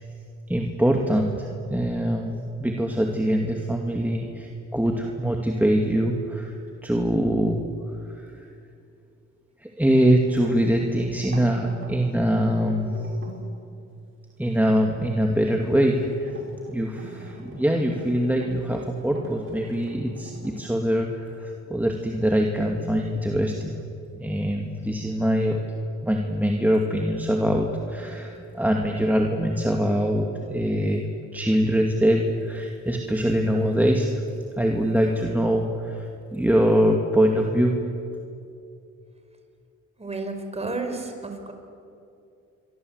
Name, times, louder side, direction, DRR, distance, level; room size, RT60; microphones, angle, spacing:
voice 1, 0.5-6.5 6.8-7.6 8.1-8.3 9.6-13.0 14.4-16.3 16.7-23.8 24.2-25.6 26.0-31.0 31.3-34.1 34.6-37.7, equal, 5° right, 1 dB, 2.4 m, -23 dB
sound 1, 9.9-13.5 14.5-14.8 15.3-20.5, right 1 dB, 40° right, 6.0 m, -42 dB
voice 2, 40.0-41.5, right 3 dB, 20° right, 6 dB, 4.8 m, -31 dB
28.5 x 24.0 x 8.2 m, 2.6 s
cardioid pair, 90°, 30 cm